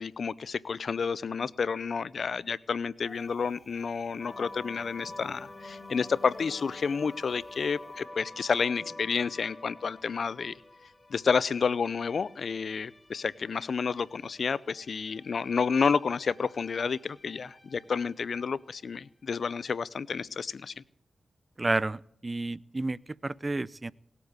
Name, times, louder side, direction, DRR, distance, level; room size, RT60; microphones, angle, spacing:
voice 1, 0.0-10.5 11.1-20.8, left 5 dB, 70° left, 21 dB, 0.6 m, -30 dB
Wind, 3.0-8.1, equal, 5° left, 7.0 m, -58 dB
sound 1, 4.2-18.7, left 2 dB, 20° left, 3.0 m, -49 dB
voice 2, 21.6-23.9, right 2 dB, 35° right, 23 dB, 0.5 m, -31 dB
19.0 x 8.3 x 8.0 m, 0.75 s
cardioid pair, 45°, 0 cm